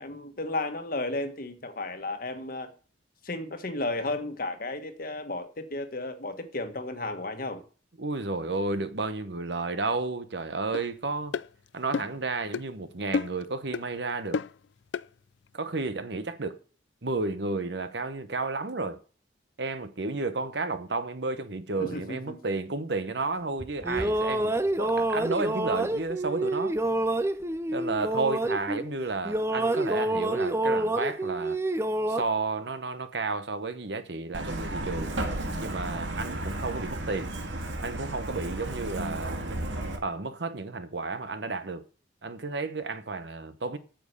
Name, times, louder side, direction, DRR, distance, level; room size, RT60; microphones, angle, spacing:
voice 1, 0.0-2.7 3.2-7.6 21.8-22.4, left 2 dB, 50° left, 1.5 m, -33 dB
voice 2, 8.0-11.4 11.7-14.4 15.5-16.6 17.0-19.0 19.6-26.8 27.7-31.6 32.1-35.1 35.6-37.3 37.8-39.5 40.0-41.8 42.2-43.8, right 3 dB, 60° right, 1.0 m, -32 dB
sound 1, 10.7-10.9 11.3-11.5 11.9-12.2 12.5-12.7 13.1-13.4 13.7-13.9 14.3-14.6 14.9-15.1, left 5 dB, 70° left, 0.4 m, -30 dB
sound 2, 23.6-29.0 29.2-32.2, right 1 dB, 15° right, 0.5 m, -28 dB
Truck, 34.3-40.0, right 1 dB, 80° right, 2.2 m, -33 dB
9.0 x 7.5 x 6.7 m
head